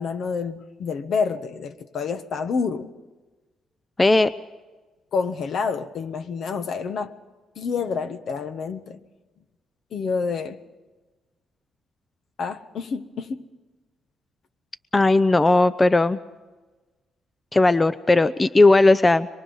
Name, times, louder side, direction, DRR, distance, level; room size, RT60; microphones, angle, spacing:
voice 1, 0.0-2.9 5.1-7.1 7.5-9.0 9.9-10.6 12.4-13.5, left 5 dB, 60° left, 9 dB, 1.4 m, -28 dB
voice 2, 4.0-4.3 14.9-16.2 17.5-19.3, left 2 dB, 20° left, 14 dB, 0.6 m, -17 dB
25.0 x 23.0 x 5.6 m, 1.2 s
cardioid pair, 90°, 0 cm